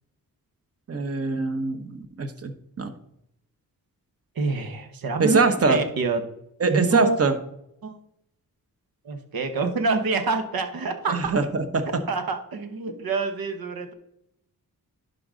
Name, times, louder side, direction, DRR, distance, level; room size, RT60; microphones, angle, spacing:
voice 1, 0.9-2.9 5.2-5.8 6.6-7.3 11.1-11.9, right 4 dB, 40° right, 7 dB, 1.1 m, -23 dB
voice 2, 4.3-6.2 6.7-7.2 7.8-8.0 9.0-11.3 12.1-13.9, right 3 dB, 75° right, 6 dB, 1.3 m, -26 dB
11.0 x 4.0 x 3.8 m, 0.76 s
cardioid pair, 75°, 36 cm